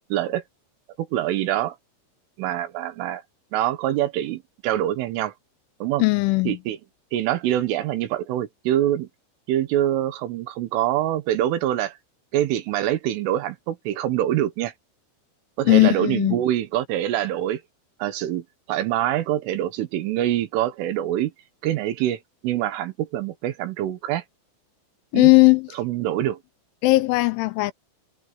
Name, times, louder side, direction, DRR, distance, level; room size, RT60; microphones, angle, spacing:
voice 1, 0.1-0.4 1.0-1.8 2.4-3.2 3.5-5.3 5.8-6.1 6.5-6.8 7.1-9.1 9.5-12.0 12.3-14.7 15.6-17.6 18.0-21.3 21.6-24.2 25.1-25.3 25.7-26.4, right 12 dB, 80° right, 3.9 m, -25 dB
voice 2, 6.0-6.6 15.7-16.4 25.1-25.7 26.8-27.7, left 24 dB, 85° left, 2.9 m, -17 dB
omnidirectional pair, 5.8 m